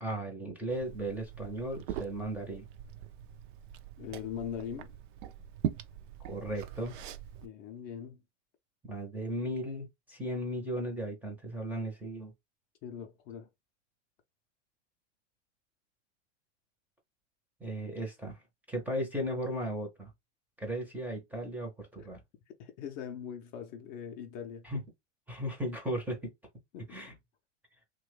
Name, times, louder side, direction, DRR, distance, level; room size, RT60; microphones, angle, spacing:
voice 1, 0.0-2.7 6.3-6.9 8.9-12.3 17.6-18.4 18.7-20.1 20.6-22.2 24.6-24.8 25.3-26.3 26.9-27.1, right 1 dB, 5° right, 0.6 m, -36 dB
Liquid, 0.7-7.5, right 10 dB, 45° right, 0.4 m, -41 dB
voice 2, 4.0-4.9 7.4-8.2 12.8-13.5 22.6-24.7 26.7-27.0, left 8 dB, 40° left, 0.5 m, -41 dB
2.9 x 2.2 x 3.2 m
hypercardioid pair, 135°, 35 cm